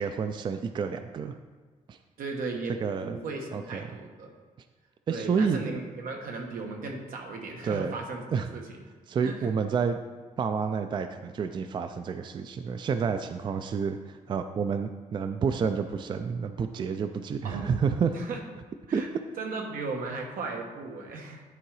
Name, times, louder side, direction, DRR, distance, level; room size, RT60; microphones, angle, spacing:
voice 1, 0.0-1.4 1.9-2.0 2.8-3.2 3.5-3.8 5.1-5.7 7.6-8.0 8.3-8.5 9.1-10.0 10.4-18.1 18.9-19.2, right 6 dB, 35° right, 8 dB, 0.3 m, -29 dB
voice 2, 2.2-2.7 3.0-4.3 5.1-8.6 9.2-9.5 17.4-17.7 18.1-18.4 18.9-19.1 19.4-21.4, right 3 dB, 90° right, 1 dB, 1.3 m, -36 dB
10.5 x 3.8 x 4.7 m, 1.5 s
cardioid pair, 150°, 14 cm